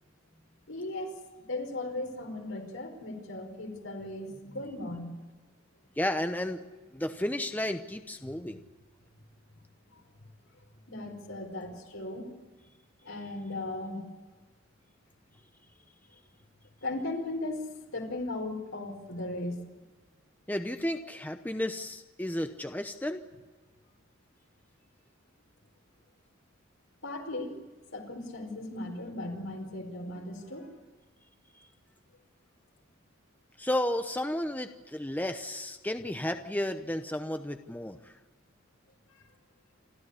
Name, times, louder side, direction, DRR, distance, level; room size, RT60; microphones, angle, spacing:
voice 1, 0.7-1.2 1.5-5.1 9.9-10.0 10.9-12.3 13.0-14.0 16.8-19.6 27.0-27.6 27.9-30.8 39.1-39.2, left 2 dB, 75° left, 3 dB, 4.9 m, -37 dB
voice 2, 6.0-6.6 6.9-8.6 20.5-23.2 31.5-31.7 33.6-38.1, left 1 dB, 10° left, 7 dB, 0.8 m, -33 dB
28.5 x 13.5 x 9.9 m, 1.3 s
head